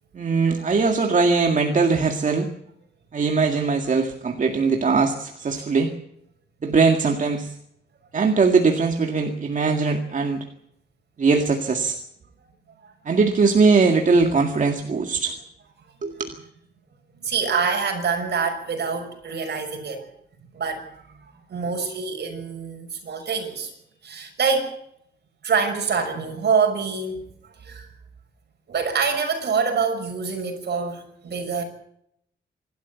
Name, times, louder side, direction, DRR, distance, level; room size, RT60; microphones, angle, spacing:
voice 1, 0.1-2.5 3.1-5.9 6.6-7.5 8.1-10.4 11.2-12.0 13.1-15.3 16.0-16.3, right 4 dB, 40° right, 4 dB, 2.1 m, -20 dB
voice 2, 12.8-13.1 17.2-20.1 20.5-23.7 24.0-24.7 25.4-27.9 28.7-31.6, right 5 dB, 60° right, 6 dB, 6.0 m, -26 dB
26.5 x 12.5 x 8.3 m, 0.74 s
cardioid pair, 115°, 19 cm